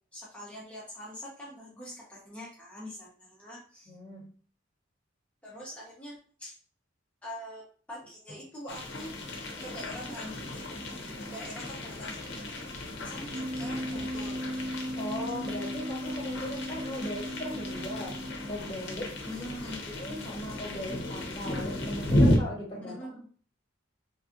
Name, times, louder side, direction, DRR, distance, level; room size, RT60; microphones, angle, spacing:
voice 1, 0.1-3.9 5.4-6.6 7.2-9.1 9.6-10.4 11.3-12.2 13.0-14.4 19.2-19.9 22.8-23.2, equal, 5° left, -6 dB, 0.7 m, -44 dB
voice 2, 3.9-4.3 15.0-18.2 18.5-19.2 20.0-23.0, left 1 dB, 25° left, -2 dB, 1.3 m, -38 dB
sound 1, 8.7-22.4, left 1 dB, 60° left, 0.7 m, -33 dB
Wind instrument woodwind instrument, 13.3-18.7, equal, 55° right, 1.5 m, -37 dB
3.3 x 2.4 x 2.6 m, 0.43 s
head